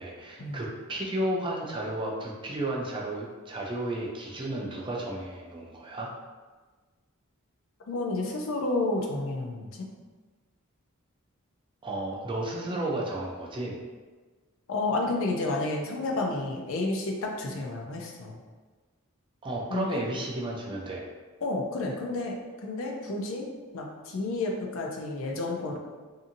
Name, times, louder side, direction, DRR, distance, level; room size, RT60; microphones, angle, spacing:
voice 1, 0.0-6.1 11.8-13.8 19.4-21.0, right 1 dB, 25° right, -2 dB, 0.4 m, -33 dB
voice 2, 7.9-9.9 14.7-18.4 19.7-20.0 21.4-23.5 23.7-25.8, left 2 dB, 65° left, 1 dB, 0.4 m, -31 dB
2.7 x 2.6 x 2.5 m, 1.4 s
head